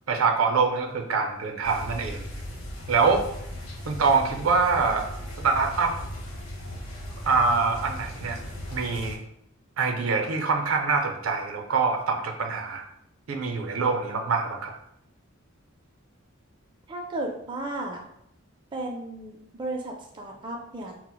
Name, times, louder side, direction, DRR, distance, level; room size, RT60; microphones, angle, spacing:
voice 1, 0.1-2.3 2.9-3.2 3.9-5.0 5.4-5.9 7.2-8.4 8.7-9.2 9.8-12.8 13.3-14.7, right 4 dB, 80° right, 4 dB, 0.5 m, -24 dB
sound 1, 1.6-9.2, left 1 dB, 80° left, 0.8 m, -37 dB
voice 2, 16.9-18.1 18.7-21.0, right 2 dB, 25° right, 0 dB, 0.3 m, -34 dB
4.3 x 2.0 x 2.2 m, 0.76 s
head